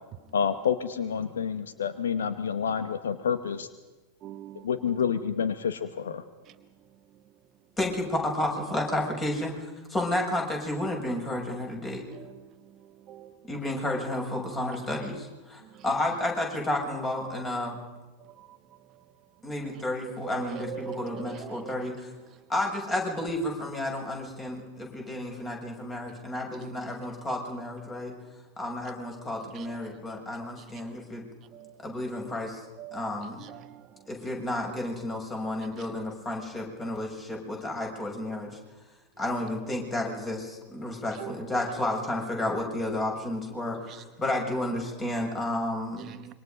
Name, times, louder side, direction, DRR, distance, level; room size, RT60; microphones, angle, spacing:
voice 1, 0.3-3.7 4.6-6.2, left 7 dB, 65° left, 11 dB, 1.2 m, -28 dB
voice 2, 4.2-4.6 13.1-13.3 20.2-21.9 29.6-29.7 31.5-31.7 32.8-33.1 33.4-33.7 41.2-41.3 46.1-46.3, right 12 dB, 35° right, 11 dB, 0.9 m, -41 dB
voice 3, 7.8-12.0 13.5-17.8 19.4-22.1 22.5-28.1 28.6-31.3 31.8-32.6 32.9-33.4 34.1-38.5 39.2-46.1, left 1 dB, 20° left, 1 dB, 6.7 m, -31 dB
26.5 x 24.0 x 5.2 m, 1.2 s
figure-of-eight pair, 90°, 0 cm